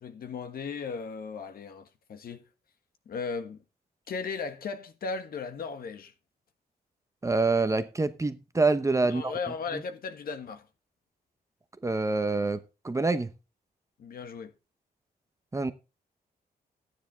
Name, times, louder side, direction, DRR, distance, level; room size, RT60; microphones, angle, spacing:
voice 1, 0.0-2.4 3.0-3.6 4.1-6.1 9.0-10.7 14.0-14.5, left 5 dB, 65° left, 1.5 m, -36 dB
voice 2, 7.2-9.3 9.7-9.8 11.8-12.6 12.8-13.3 15.5-15.7, right 3 dB, 20° right, 0.9 m, -26 dB
11.5 x 9.7 x 3.4 m
cardioid pair, 110°, 16 cm